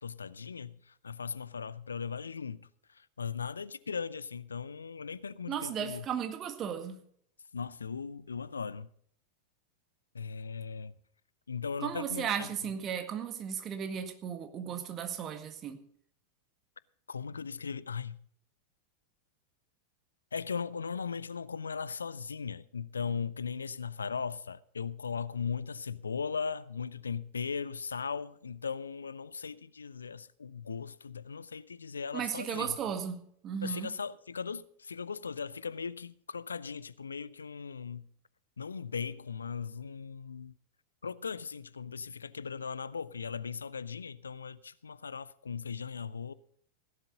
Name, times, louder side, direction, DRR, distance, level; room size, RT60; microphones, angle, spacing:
voice 1, 0.0-6.1 7.5-8.9 10.1-10.9 11.5-12.7 17.1-18.2 20.3-32.8 33.6-38.1 38.6-40.5 41.0-46.3, left 6 dB, 75° left, 0.5 m, -38 dB
voice 2, 5.5-7.0 11.8-15.8 32.1-33.9, right 8 dB, 30° right, 1.8 m, -35 dB
16.5 x 11.5 x 4.0 m
figure-of-eight pair, 90°, 0 cm